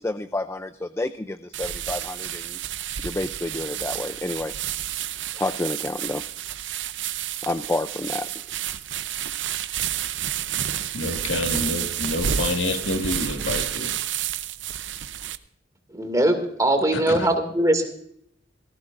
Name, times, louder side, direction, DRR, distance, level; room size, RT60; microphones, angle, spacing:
voice 1, 0.0-2.6 3.0-4.5 5.3-6.2 7.4-8.3, left 2 dB, 15° left, 11 dB, 0.4 m, -29 dB
sound 1, 1.5-15.4, right 10 dB, 75° right, 0.7 m, -30 dB
voice 2, 10.9-13.9 16.9-17.3, left 2 dB, 85° left, 5 dB, 1.7 m, -28 dB
voice 3, 15.9-17.9, right 1 dB, 20° right, 6 dB, 2.2 m, -21 dB
18.5 x 15.5 x 2.5 m, 0.69 s
head